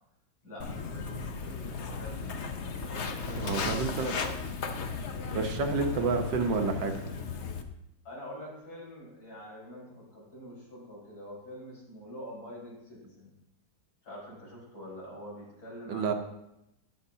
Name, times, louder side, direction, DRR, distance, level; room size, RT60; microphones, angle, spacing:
voice 1, 0.4-2.2 2.7-4.3 5.3-6.0 8.0-13.3 14.0-16.2, equal, 80° left, -5 dB, 5.6 m, -45 dB
Walk footsteps, 0.6-7.6, left 5 dB, 55° left, 0.7 m, -36 dB
voice 2, 3.3-4.2 5.3-6.9 15.9-16.1, right 4 dB, 70° right, 5 dB, 1.6 m, -29 dB
20.0 x 6.9 x 2.8 m, 0.87 s
omnidirectional pair, 2.1 m